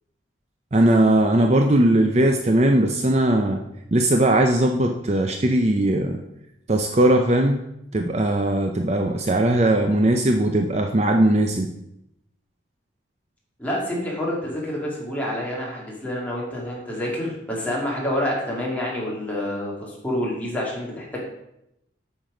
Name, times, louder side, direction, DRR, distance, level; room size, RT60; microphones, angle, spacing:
voice 1, 0.7-3.6 3.9-6.2 6.7-7.6 7.9-11.7, right 1 dB, 35° right, 4 dB, 0.6 m, -19 dB
voice 2, 13.6-21.3, left 1 dB, 10° left, -4 dB, 2.5 m, -28 dB
9.0 x 6.2 x 5.0 m, 0.83 s
head